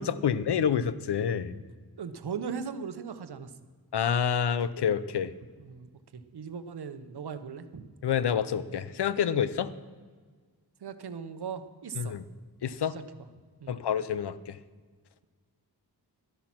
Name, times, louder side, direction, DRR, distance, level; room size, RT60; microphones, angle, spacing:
voice 1, 0.0-1.6 3.9-5.3 8.0-9.7 12.0-12.2 12.6-13.0 13.7-14.6, left 8 dB, 85° left, 15 dB, 0.7 m, -28 dB
voice 2, 2.0-3.5 5.6-7.9 10.8-12.2 12.9-13.0 13.6-13.8, right 6 dB, 75° right, 11 dB, 0.9 m, -39 dB
12.5 x 10.5 x 5.9 m, 1.5 s
wide cardioid pair, 80°, 39 cm